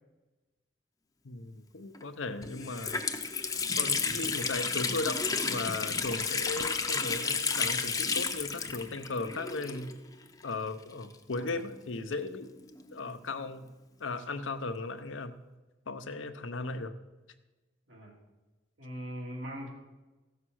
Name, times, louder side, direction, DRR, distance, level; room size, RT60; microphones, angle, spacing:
voice 1, 1.2-3.1 3.7-10.0 10.4-12.5 12.9-13.7 14.0-15.3 15.9-17.0, left 3 dB, 85° left, 9 dB, 0.8 m, -37 dB
Water tap faucet, 1.9-2.0 2.4-10.1 10.4-10.5 11.3-12.9, left 5 dB, 20° left, 0.6 m, -32 dB
voice 2, 18.8-19.7, equal, 85° right, -2 dB, 2.9 m, -42 dB
15.0 x 6.7 x 6.3 m, 1.2 s
head